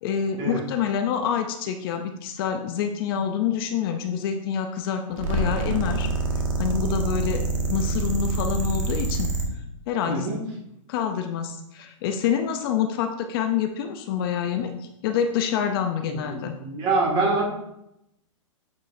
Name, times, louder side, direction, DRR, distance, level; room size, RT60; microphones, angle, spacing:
voice 1, 0.0-6.1 6.6-7.4 7.7-9.3 9.9-10.3 10.9-16.6, left 8 dB, 45° left, 6 dB, 0.6 m, -27 dB
sound 1, 5.1-9.5, right 3 dB, 75° right, 1.7 m, -26 dB
voice 2, 16.1-17.4, right 3 dB, 30° right, -2 dB, 2.1 m, -25 dB
9.0 x 5.4 x 2.7 m, 0.82 s
hypercardioid pair, 145°, 17 cm